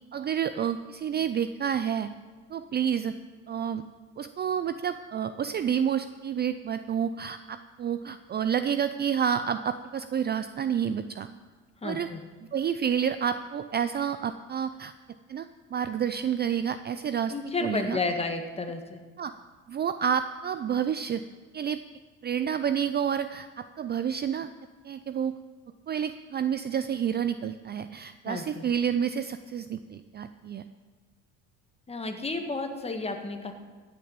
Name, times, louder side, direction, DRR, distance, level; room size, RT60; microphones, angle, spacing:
voice 1, 0.1-2.1 2.5-3.1 3.5-3.8 4.2-11.3 11.8-12.1 12.5-14.9 15.3-17.3 17.6-18.0 19.2-19.3 19.7-21.2 21.5-21.8 22.2-24.5 24.8-25.3 25.9-30.6, right 8 dB, 30° right, 11 dB, 0.5 m, -29 dB
voice 2, 11.8-12.2 17.3-19.0 28.3-28.6 31.9-33.5, left 3 dB, 15° left, 5 dB, 1.8 m, -32 dB
15.5 x 6.9 x 8.7 m, 1.4 s
supercardioid pair, 105°, 35 cm